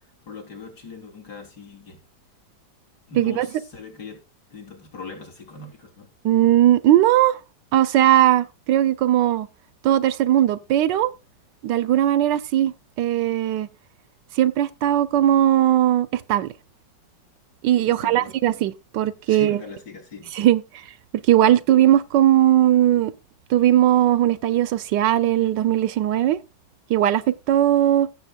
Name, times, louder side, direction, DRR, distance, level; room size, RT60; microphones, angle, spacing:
voice 1, 0.3-2.0 3.1-4.2 4.5-6.1 17.9-18.4 19.3-20.4, left 4 dB, 65° left, 3.8 m, -39 dB
voice 2, 6.2-7.4 7.7-9.5 9.8-11.1 11.6-13.7 14.4-16.5 17.6-19.6 20.3-20.8 21.3-23.1 23.5-26.4 26.9-28.1, right 12 dB, 80° right, 1.3 m, -19 dB
16.0 x 7.4 x 2.3 m
omnidirectional pair, 1.9 m